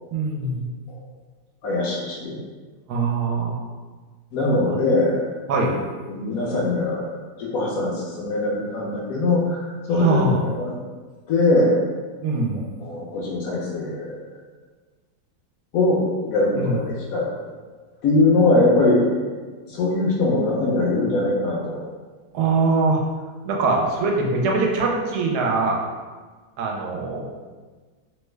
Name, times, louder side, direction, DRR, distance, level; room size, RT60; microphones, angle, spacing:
voice 1, 0.1-0.7 2.9-3.5 5.5-5.8 9.9-10.4 12.2-12.6 16.6-16.8 22.3-23.0 23.4-25.8 26.6-27.3, right 3 dB, 80° right, -1 dB, 1.1 m, -22 dB
voice 2, 1.6-2.4 4.3-5.3 6.1-7.1 7.4-10.2 10.4-10.7 11.3-11.8 12.8-14.2 15.7-17.3 18.0-19.0 19.7-21.8, left 2 dB, 70° left, -3 dB, 1.0 m, -21 dB
3.1 x 2.2 x 3.2 m, 1.4 s
omnidirectional pair, 1.8 m